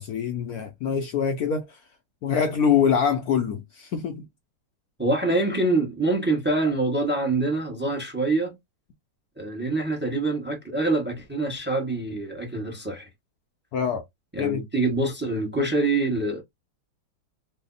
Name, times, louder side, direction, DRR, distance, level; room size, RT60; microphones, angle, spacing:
voice 1, 0.0-1.8 2.2-4.3 13.7-14.0 14.4-14.6, left 7 dB, 85° left, 0.8 m, -24 dB
voice 2, 5.0-8.5 9.4-13.1 14.3-16.4, right 2 dB, 15° right, 0.4 m, -25 dB
3.4 x 2.1 x 3.8 m
omnidirectional pair, 2.2 m